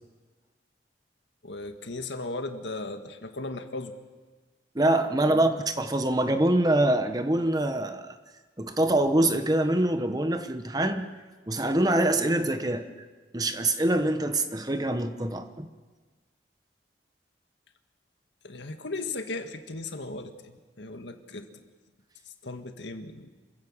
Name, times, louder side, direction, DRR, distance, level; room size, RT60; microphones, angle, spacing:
voice 1, 1.4-3.9 5.3-5.6 18.4-21.6 22.3-23.3, left 2 dB, 75° left, 6 dB, 1.8 m, -37 dB
voice 2, 4.7-8.1 8.6-11.1 11.5-12.9 13.3-15.7, right 1 dB, 20° right, 8 dB, 1.1 m, -25 dB
27.0 x 16.0 x 7.4 m, 1.4 s
head